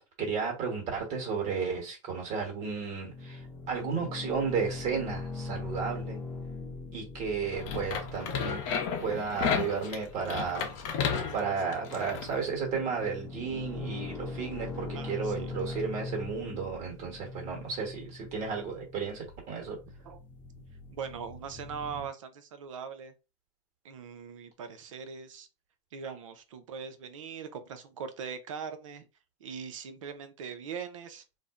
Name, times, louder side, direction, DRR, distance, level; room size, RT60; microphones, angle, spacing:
voice 1, 0.2-3.4 3.7-6.2 6.9-8.6 9.0-10.6 11.3-19.8, right 5 dB, 45° right, 1.3 m, -33 dB
sound 1, 3.1-22.1, left 3 dB, 15° left, 0.8 m, -42 dB
sound 2, 7.5-12.3, left 7 dB, 45° left, 0.7 m, -33 dB
voice 2, 14.9-15.8 20.0-20.2 20.9-23.1 23.8-25.5 25.9-29.1 29.4-31.2, right 6 dB, 85° right, 0.6 m, -41 dB
2.5 x 2.1 x 3.6 m
supercardioid pair, 125°, 16 cm